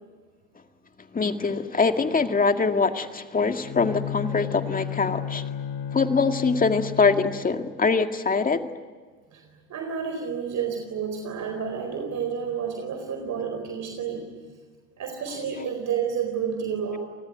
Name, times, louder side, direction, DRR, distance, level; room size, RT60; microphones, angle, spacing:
voice 1, 1.1-5.4 5.9-8.7, left 4 dB, 20° left, 7 dB, 2.0 m, -23 dB
Bowed string instrument, 3.5-7.6, left 9 dB, 70° left, 4.2 m, -33 dB
voice 2, 9.3-14.3 15.0-17.0, right 7 dB, 45° right, 4 dB, 4.6 m, -30 dB
29.5 x 20.0 x 9.3 m, 1.5 s
hypercardioid pair, 80°, 39 cm